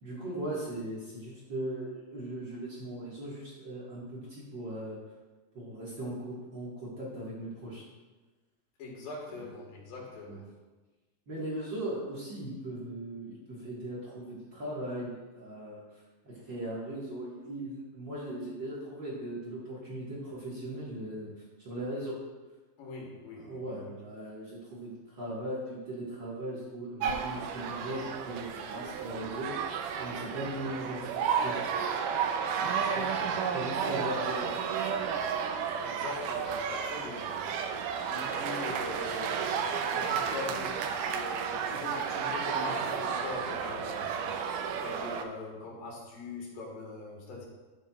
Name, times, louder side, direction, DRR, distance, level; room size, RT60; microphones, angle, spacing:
voice 1, 0.0-5.0 5.5-7.8 10.2-10.4 11.3-21.3 21.6-22.2 23.4-31.6 33.5-34.5, right 1 dB, 45° right, -7 dB, 1.5 m, -38 dB
voice 2, 8.8-10.5 22.8-23.6 32.6-33.5 35.8-37.4 37.7-37.8 38.1-44.3 44.8-47.5, left 3 dB, 70° left, -1 dB, 3.2 m, -42 dB
sound 1, 27.0-45.2, right 6 dB, 85° right, 1.9 m, -32 dB
12.0 x 7.4 x 2.4 m, 1.2 s
omnidirectional pair, 4.3 m